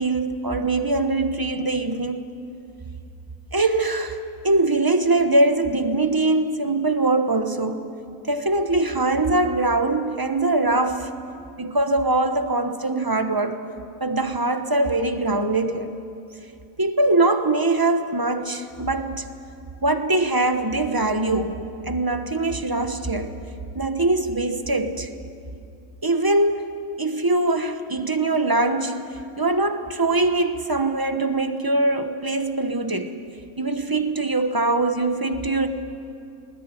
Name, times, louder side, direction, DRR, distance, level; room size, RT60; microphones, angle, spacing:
voice 1, 0.0-2.3 3.5-4.2 4.4-7.9 8.3-11.1 11.6-13.6 14.0-16.0 16.8-19.2 19.8-23.4 23.7-25.1 26.0-29.0 29.4-33.1 33.6-35.7, right 2 dB, 15° right, 7 dB, 1.0 m, -22 dB
20.5 x 20.0 x 10.0 m, 2.6 s
omnidirectional pair, 1.7 m